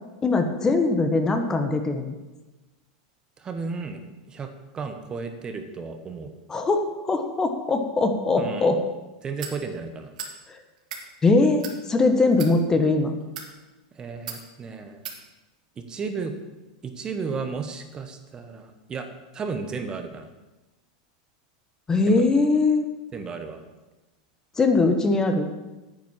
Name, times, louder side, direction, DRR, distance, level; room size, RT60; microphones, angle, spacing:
voice 1, 0.2-2.1 6.5-8.8 10.5-10.6 11.2-13.1 21.9-22.8 24.6-25.5, left 3 dB, 15° left, 6 dB, 1.1 m, -21 dB
voice 2, 3.4-4.0 4.3-6.3 8.4-8.7 9.2-10.1 13.9-15.0 15.9-16.3 16.8-19.1 19.3-20.3 22.0-22.2 23.1-23.6, right 5 dB, 20° right, 7 dB, 1.1 m, -33 dB
sound 1, 9.4-9.6 10.2-10.4 10.8-11.0 11.6-11.8 12.3-12.5 13.2-13.5 14.3-14.4 15.0-15.2, right 7 dB, 80° right, 2.3 m, -36 dB
9.3 x 9.2 x 7.3 m, 1.1 s
supercardioid pair, 145°, 4 cm